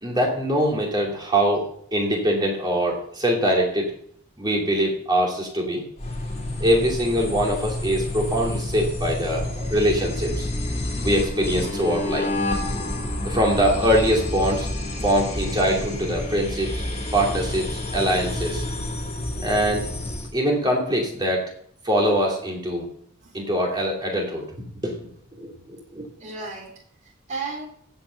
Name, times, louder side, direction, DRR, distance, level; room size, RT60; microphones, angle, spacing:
voice 1, 0.0-3.9 4.4-5.8 6.6-9.4 9.7-10.5 11.0-12.3 13.2-14.7 15.0-16.7 17.1-18.6 19.4-19.8 20.3-21.4 21.8-22.9 23.3-24.4 24.8-24.9 25.4-26.0, equal, 20° right, -2 dB, 2.7 m, -23 dB
sound 1, 6.0-20.3, left 1 dB, 30° left, 2.6 m, -29 dB
voice 2, 9.3-9.7 13.7-13.9 23.2-23.4 26.2-26.7 27.0-27.7, right 3 dB, 35° right, -1 dB, 4.0 m, -35 dB
15.5 x 5.8 x 6.9 m, 0.63 s
head